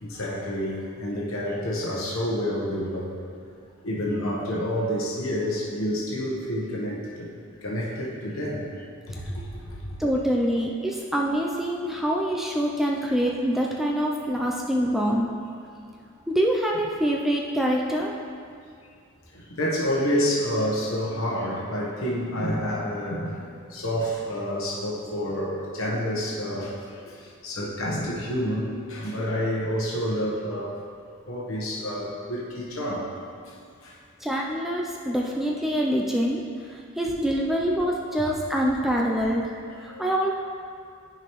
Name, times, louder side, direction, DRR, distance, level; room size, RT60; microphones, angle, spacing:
voice 1, 0.0-3.3 3.8-7.3 7.6-8.7 9.3-9.4 9.6-9.9 14.3-14.4 19.5-23.4 23.7-26.7 27.4-30.7 31.3-33.1 33.8-33.9 38.2-38.3 39.8-40.1, equal, 75° left, -5 dB, 1.1 m, -28 dB
voice 2, 10.0-15.3 16.3-18.1 34.2-36.4 36.7-39.4 39.8-40.3, equal, ahead, -2 dB, 0.3 m, -25 dB
9.7 x 5.0 x 3.0 m, 2.3 s
head